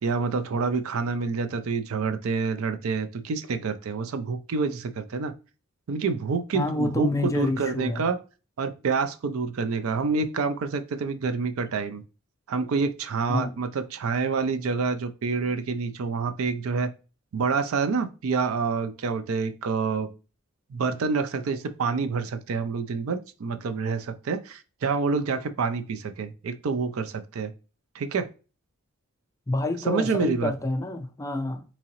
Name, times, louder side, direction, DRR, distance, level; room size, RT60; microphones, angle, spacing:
voice 1, 0.0-5.3 5.9-8.2 8.6-12.0 12.5-16.9 17.3-20.1 20.7-27.5 27.9-28.3 29.9-30.5, right 4 dB, 75° right, 0.4 m, -27 dB
voice 2, 6.5-8.1 13.3-13.6 29.5-31.6, left 2 dB, 15° left, 0.4 m, -28 dB
3.7 x 2.9 x 2.9 m
head